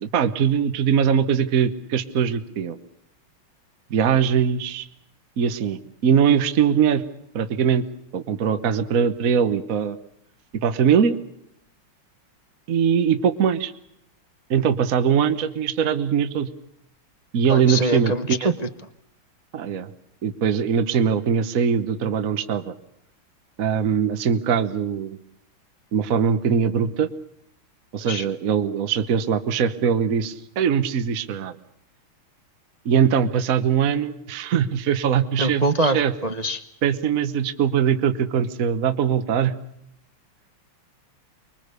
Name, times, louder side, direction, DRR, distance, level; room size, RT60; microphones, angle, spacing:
voice 1, 0.0-2.8 3.9-4.9 5.4-7.0 7.3-7.8 8.1-10.0 10.6-11.2 12.7-13.7 14.5-16.5 17.3-18.5 19.5-19.9 20.2-22.7 23.6-25.2 25.9-27.1 27.9-31.5 32.8-36.1 36.8-39.5, right 7 dB, 50° right, 10 dB, 1.2 m, -21 dB
voice 2, 17.5-18.5 28.0-28.2 35.4-36.6, right 1 dB, 70° right, 7 dB, 0.4 m, -24 dB
25.0 x 22.5 x 6.7 m, 0.75 s
omnidirectional pair, 2.4 m